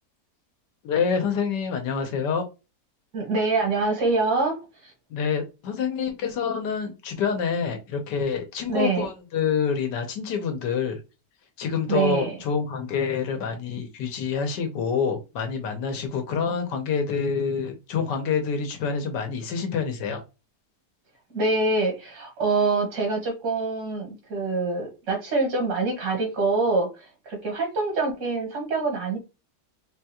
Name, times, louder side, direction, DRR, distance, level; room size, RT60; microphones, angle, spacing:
voice 1, 0.8-2.4 5.1-11.0 11.6-20.2, left 6 dB, 90° left, 1.5 m, -27 dB
voice 2, 3.1-4.9 8.7-9.1 11.9-12.4 21.3-29.2, right 3 dB, 75° right, 1.9 m, -25 dB
3.9 x 2.3 x 2.8 m
omnidirectional pair, 1.8 m